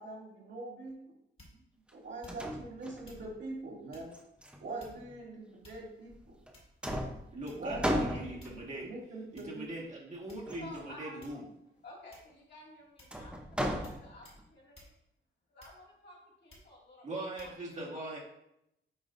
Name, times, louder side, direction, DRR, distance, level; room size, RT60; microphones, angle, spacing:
voice 1, 0.0-1.0 1.9-4.1 4.6-6.4 7.6-8.4 8.8-9.6, right 2 dB, 60° right, -4 dB, 2.3 m, -43 dB
sound 1, 1.4-1.7 2.2-2.6 3.0-3.3 3.9-4.1 4.8-5.2 5.6-6.1 6.5-6.8 7.5-7.8 8.4-8.7 9.4-9.5 10.3-10.7 11.2-11.5 12.1-12.5 13.0-13.2 13.8-14.0 14.2-14.4 14.7-15.0 15.6-16.0 16.5-16.7 17.4-17.6, left 1 dB, 25° left, 2.0 m, -57 dB
sound 2, 1.9-2.0 2.3-3.3 4.1-5.1 6.1-6.5 6.8-8.8 10.5-10.9 13.1-14.4, equal, 5° right, 0.7 m, -36 dB
voice 2, 7.3-8.9 9.3-11.4 17.0-18.2, right 1 dB, 35° right, -3 dB, 1.7 m, -41 dB
voice 3, 10.6-11.2 11.8-14.9 15.5-17.1 17.4-17.5 17.9-18.0, left 2 dB, 55° left, -4 dB, 2.3 m, -52 dB
8.8 x 5.6 x 2.6 m, 0.80 s
wide cardioid pair, 175°, 21 cm